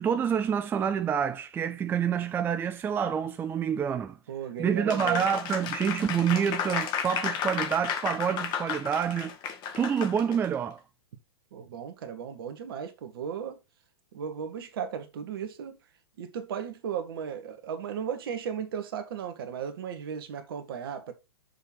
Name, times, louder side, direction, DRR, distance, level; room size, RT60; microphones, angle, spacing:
voice 1, 0.0-4.2 4.6-9.3 9.8-10.8, right 8 dB, 15° right, 0.4 m, -27 dB
voice 2, 4.3-5.2 11.5-13.6 14.1-15.8 16.2-21.1, right 7 dB, 60° right, 1.5 m, -36 dB
Applause, 4.9-10.5, left 7 dB, 30° left, 1.2 m, -33 dB
6.8 x 3.4 x 5.9 m
hypercardioid pair, 110°, 13 cm